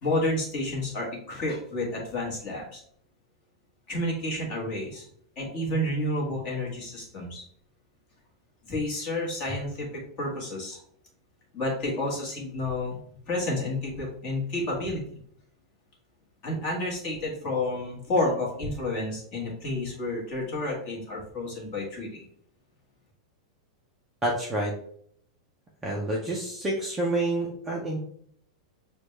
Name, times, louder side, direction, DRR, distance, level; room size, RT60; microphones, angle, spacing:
voice 1, 0.0-2.8 3.9-5.0 5.4-7.4 8.6-10.8 11.5-13.0 13.3-15.0 16.4-22.2, left 1 dB, 25° left, -2 dB, 1.3 m, -30 dB
voice 2, 24.2-24.7 25.8-28.0, right 1 dB, 10° right, -3 dB, 0.5 m, -28 dB
6.2 x 2.3 x 3.1 m, 0.63 s
supercardioid pair, 175°, 3 cm